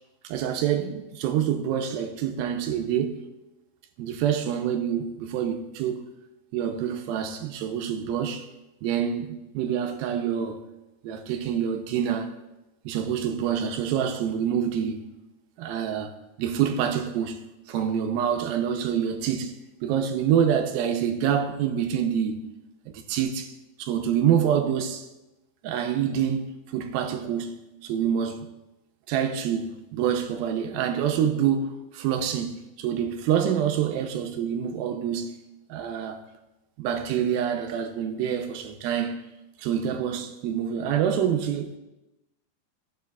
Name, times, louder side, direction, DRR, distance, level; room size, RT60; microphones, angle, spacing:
voice 1, 0.2-3.2 4.0-6.1 6.5-8.5 8.8-10.6 11.0-12.3 12.9-15.1 15.6-16.1 16.4-19.5 19.8-22.5 22.9-23.5 23.8-25.1 25.6-27.6 27.8-28.5 29.1-35.3 35.7-36.2 36.8-39.2 39.6-41.8, right 8 dB, 85° right, 2.4 m, -26 dB
14.5 x 6.9 x 2.3 m
omnidirectional pair, 4.3 m